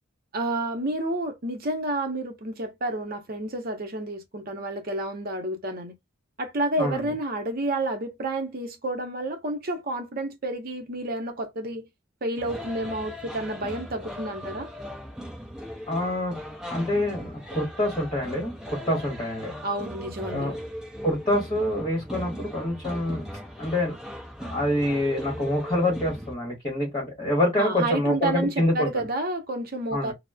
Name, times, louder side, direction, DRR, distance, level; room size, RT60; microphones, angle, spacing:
voice 1, 0.3-5.9 6.4-11.9 12.2-14.7 19.6-20.5 27.6-30.1, right 1 dB, 45° right, 0.7 m, -30 dB
voice 2, 6.8-7.1 15.9-16.4 16.7-19.5 20.3-20.5 21.0-23.2 23.6-23.9 24.5-29.1 29.9-30.1, left 1 dB, 20° left, 1.1 m, -26 dB
sound 1, 12.4-26.3, equal, 5° right, 0.5 m, -38 dB
2.9 x 2.0 x 2.2 m
head